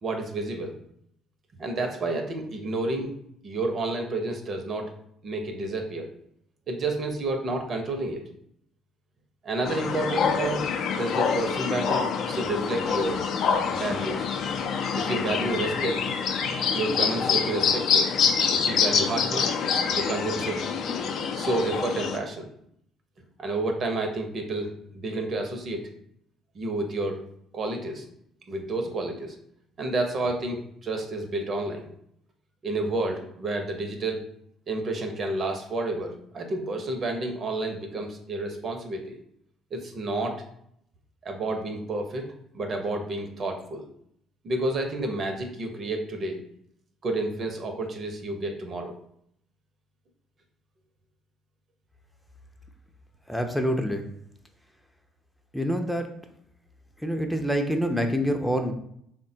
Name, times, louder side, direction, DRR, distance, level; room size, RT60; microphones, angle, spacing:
voice 1, 0.0-0.8 1.6-3.1 3.4-4.9 5.2-6.1 6.7-8.2 9.4-10.6 11.0-13.3 13.7-14.3 14.9-16.0 16.7-18.1 18.5-19.5 19.9-20.6 21.3-22.5 23.4-25.9 26.5-27.2 27.5-28.0 28.5-29.4 29.8-31.9 32.6-34.2 34.7-39.2 39.7-40.4 41.2-42.3 42.5-43.8 44.4-46.4 47.0-49.0, right 2 dB, 50° right, 4 dB, 0.6 m, -30 dB
sound 1, 9.7-22.2, left 6 dB, 60° left, 0.4 m, -26 dB
voice 2, 53.3-54.0 55.5-56.1 57.0-58.7, equal, 5° left, 4 dB, 0.5 m, -26 dB
3.5 x 2.2 x 2.7 m, 0.71 s
hypercardioid pair, 55°, 0 cm